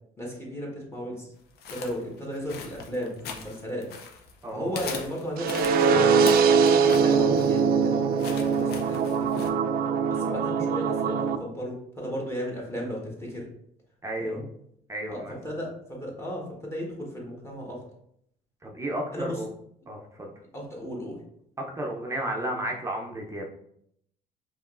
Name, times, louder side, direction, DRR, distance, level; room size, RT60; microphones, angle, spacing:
voice 1, 0.2-1.3 1.7-3.9 4.5-6.4 6.9-9.4 10.1-13.4 14.2-14.4 15.1-17.8 19.1-19.4 20.5-21.2, equal, 15° left, -3 dB, 1.3 m, -35 dB
sound 1, 1.6-4.4 4.7-9.5, left 5 dB, 75° left, 0.7 m, -40 dB
voice 2, 4.4-4.7 10.0-10.2 14.0-14.4 14.9-15.4 18.6-19.5 19.9-20.3 21.6-23.5, right 1 dB, 15° right, 0 dB, 0.6 m, -33 dB
sound 2, 5.4-11.4, right 5 dB, 60° right, 0.4 m, -22 dB
5.0 x 3.0 x 2.5 m, 0.73 s
cardioid pair, 110°, 17 cm